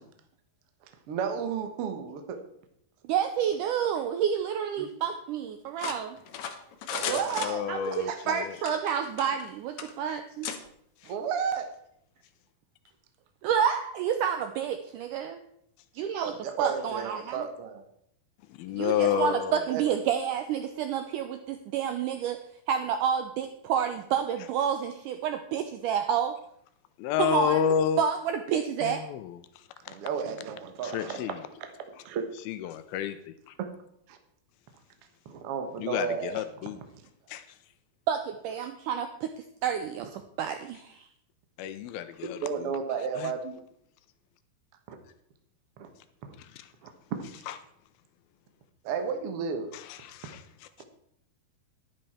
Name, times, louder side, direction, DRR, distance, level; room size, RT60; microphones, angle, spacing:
voice 1, 1.1-2.4 4.8-4.9 6.9-7.6 8.1-8.4 11.1-11.7 16.4-17.8 19.1-19.3 19.7-19.8 29.9-31.2 32.0-32.2 33.6-33.7 34.1-34.2 35.2-36.4 42.4-43.5 44.9-45.0 45.8-45.9 46.2-46.3 46.8-46.9 47.2-47.3 48.8-49.7 50.8-50.9, right 6 dB, 60° right, 1.6 m, -32 dB
voice 2, 3.1-6.2 7.7-10.5 13.4-15.4 15.9-17.4 18.7-22.4 22.7-26.3 27.2-27.6 28.0-29.0 38.1-39.3 39.6-41.1, right 8 dB, 85° right, 1.9 m, -29 dB
sound 1, 5.8-8.0 8.6-9.5 9.8-9.9 10.4-10.6, left 8 dB, 65° left, 1.8 m, -36 dB
voice 3, 7.4-8.6 10.1-10.2 11.0-11.1 18.5-19.7 27.0-28.1 28.8-30.0 30.8-31.4 32.5-33.6 35.8-36.8 37.3-37.6 41.6-42.7 43.2-43.3 46.4-46.7 47.5-47.6 49.7-50.9, left 9 dB, 85° left, 2.5 m, -31 dB
11.0 x 10.5 x 4.4 m
omnidirectional pair, 4.4 m